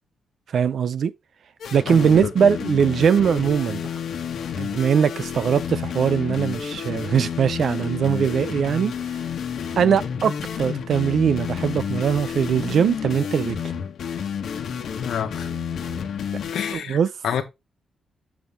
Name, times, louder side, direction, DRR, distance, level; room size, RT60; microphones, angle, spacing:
voice 1, 0.5-1.1 1.7-3.8 4.6-9.2 9.8-13.6 16.7-17.1, right 7 dB, 55° right, 0.5 m, -21 dB
sound 1, 1.6-16.7, left 7 dB, 70° left, 1.2 m, -30 dB
voice 2, 1.9-2.3 15.0-15.5 16.5-17.0 17.2-17.4, left 8 dB, 85° left, 1.3 m, -28 dB
7.1 x 5.8 x 3.4 m
wide cardioid pair, 180°, 0 cm